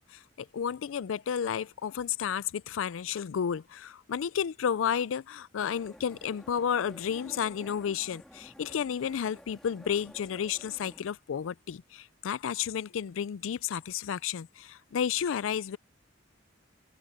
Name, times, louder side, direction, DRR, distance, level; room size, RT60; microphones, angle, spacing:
voice 1, 0.0-15.8, left 8 dB, 85° left, 0.4 m, -32 dB
sound 1, 5.6-11.0, equal, 5° left, 2.3 m, -52 dB
head